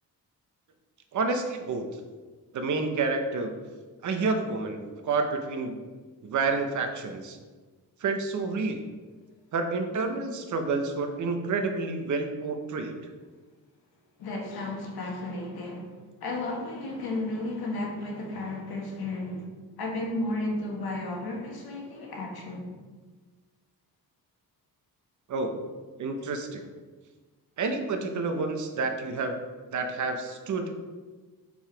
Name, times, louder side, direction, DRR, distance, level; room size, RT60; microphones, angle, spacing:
voice 1, 1.1-1.8 2.5-3.5 4.0-5.8 6.2-7.4 8.0-8.8 9.5-12.9 25.3-25.5 26.0-26.6 27.6-29.3 29.7-30.8, right 4 dB, 55° right, 5 dB, 0.8 m, -29 dB
voice 2, 14.2-15.9 16.2-19.5 19.8-22.7, left 2 dB, 85° left, -1 dB, 1.5 m, -33 dB
5.4 x 4.8 x 4.5 m, 1.4 s
wide cardioid pair, 155°, 36 cm